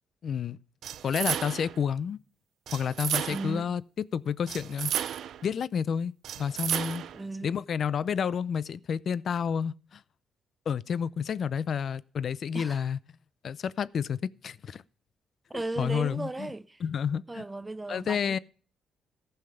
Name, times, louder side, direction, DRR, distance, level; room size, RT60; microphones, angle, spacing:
voice 1, 0.2-0.6 1.0-2.2 2.7-3.8 4.1-4.9 5.4-7.0 7.4-10.0 10.7-13.0 13.4-14.2 14.4-14.8 15.8-16.5 16.8-17.4 17.9-18.4, left 7 dB, 55° left, 0.5 m, -30 dB
sound 1, 0.8-1.8 2.7-3.6 4.5-5.4 6.2-7.2, right 10 dB, 70° right, 0.6 m, -33 dB
voice 2, 3.3-3.8 7.1-7.6 12.5-12.9 15.5-16.8 17.3-18.4, right 2 dB, 15° right, 0.5 m, -36 dB
14.5 x 5.7 x 6.9 m
cardioid pair, 90°, 0 cm